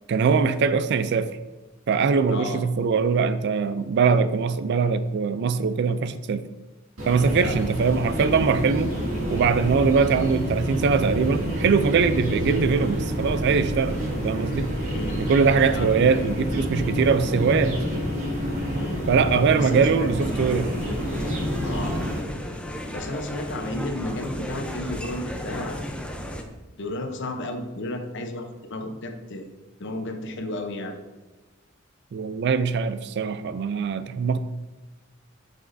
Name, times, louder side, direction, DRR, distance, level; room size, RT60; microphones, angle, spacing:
voice 1, 0.1-1.3 1.9-6.5 7.1-8.9 9.3-14.7 15.2-17.8 19.1-20.7 32.1-34.4, right 5 dB, 55° right, 13 dB, 0.3 m, -22 dB
voice 2, 2.3-2.6 7.4-7.6 14.9-15.3 15.7-16.0 18.8-19.0 19.5-20.3 21.6-22.1 22.9-25.9 26.8-29.5 29.8-31.0, left 1 dB, 60° left, 5 dB, 0.7 m, -33 dB
Outdoor noise of birds, 7.0-22.2, equal, 85° right, 2.0 m, -28 dB
sound 1, 20.2-26.4, equal, 5° left, 0.5 m, -34 dB
7.8 x 6.0 x 2.6 m, 1.2 s
head